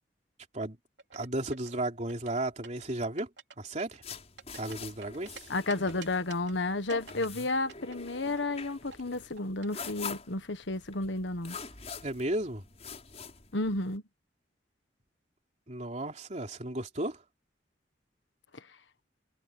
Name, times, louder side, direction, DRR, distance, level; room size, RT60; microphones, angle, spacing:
sound 1, 1.0-1.7 2.1-2.9 3.2-3.5 3.8-5.4 5.7-6.5 6.9-8.7 8.9-9.9, right 6 dB, 75° right, 3.2 m, -48 dB
voice 1, 1.1-3.3 3.6-4.0 4.6-5.5 7.4-7.5 12.0-12.6 15.7-17.2, right 1 dB, 40° right, 3.3 m, -34 dB
sound 2, 4.0-14.0, left 5 dB, 35° left, 6.0 m, -45 dB
voice 2, 5.5-11.6 13.5-14.0, left 2 dB, 85° left, 1.5 m, -32 dB
head